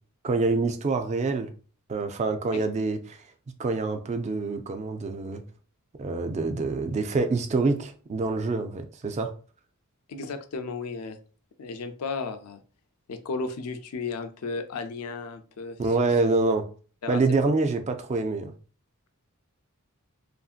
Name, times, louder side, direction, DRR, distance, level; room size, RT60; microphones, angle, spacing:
voice 1, 0.2-1.5 1.9-3.2 3.6-5.4 6.0-9.3 15.8-16.6 17.1-18.5, right 3 dB, 30° right, 0.3 m, -26 dB
voice 2, 10.1-11.2 11.6-12.6 13.1-16.1 17.0-17.2, left 4 dB, 80° left, 0.4 m, -34 dB
2.9 x 2.6 x 2.4 m
head